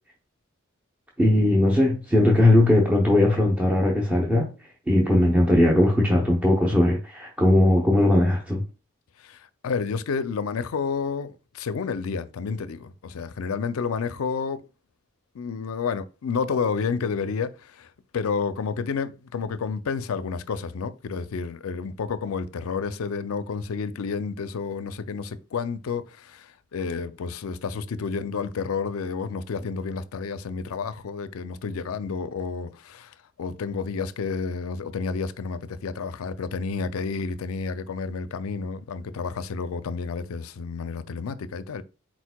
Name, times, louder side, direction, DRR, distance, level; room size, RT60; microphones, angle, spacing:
voice 1, 1.2-4.5 4.9-8.6, left 1 dB, 5° right, 0.6 m, -19 dB
voice 2, 9.2-14.6 15.3-41.8, left 5 dB, 75° left, 0.4 m, -30 dB
4.5 x 4.2 x 2.2 m
head